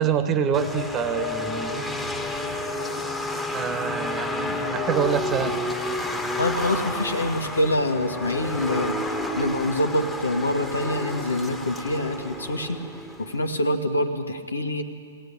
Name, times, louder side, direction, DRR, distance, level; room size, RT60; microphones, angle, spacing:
voice 1, 0.0-1.8 3.5-5.6, right 7 dB, 25° right, 11 dB, 1.3 m, -26 dB
sound 1, 0.5-13.6, left 1 dB, 5° left, 1.5 m, -30 dB
voice 2, 6.4-12.8 13.2-14.8, left 1 dB, 80° left, 6 dB, 1.7 m, -25 dB
20.5 x 17.0 x 8.7 m, 2.3 s
figure-of-eight pair, 115°, 0 cm